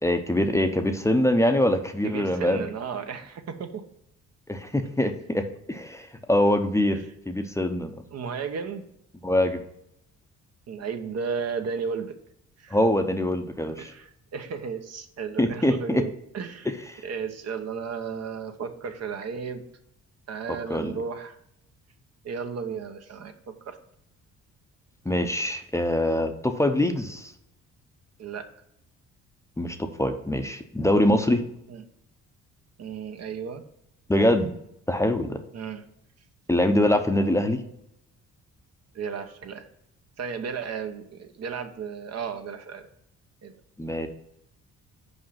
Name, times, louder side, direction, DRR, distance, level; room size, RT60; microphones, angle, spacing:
voice 1, 0.0-2.7 4.5-5.4 5.7-7.0 7.3-7.9 9.2-9.6 12.7-13.9 15.4-16.0 20.7-20.9 25.1-27.3 29.6-31.4 34.1-34.5 34.9-35.4 36.5-37.6 43.8-44.1, left 1 dB, 10° left, 6 dB, 0.7 m, -23 dB
voice 2, 2.0-3.8 6.9-7.0 8.1-8.9 10.7-12.1 12.6-12.8 13.8-16.7 17.0-19.6 20.3-21.4 22.2-23.8 28.2-28.5 31.7-31.8 32.8-33.6 35.5-35.8 38.9-39.7 40.2-42.9 43.4-43.5, right 6 dB, 55° right, 7 dB, 0.9 m, -34 dB
5.4 x 5.0 x 5.6 m, 0.78 s
cardioid pair, 90°, 30 cm